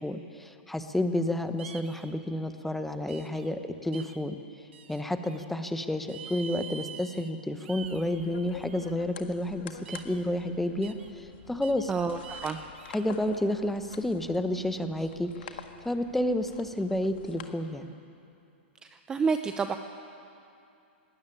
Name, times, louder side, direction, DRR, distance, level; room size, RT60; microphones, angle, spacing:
voice 1, 0.0-4.4 4.9-11.9 12.9-17.9, left 1 dB, 5° left, 8 dB, 1.0 m, -30 dB
sound 1, 1.6-2.1 3.1-3.5 3.9-4.2 4.7-5.5 6.1-7.3 7.6-8.9 9.8-10.2 10.8-11.1 11.6-11.9 12.2-13.0, right 7 dB, 75° right, 1.8 m, -46 dB
sound 2, 7.8-17.5, left 9 dB, 60° left, 1.7 m, -47 dB
voice 2, 11.9-12.6 19.1-19.8, right 5 dB, 10° right, 8 dB, 0.6 m, -28 dB
19.5 x 17.0 x 10.0 m, 2.6 s
hypercardioid pair, 150°, 6 cm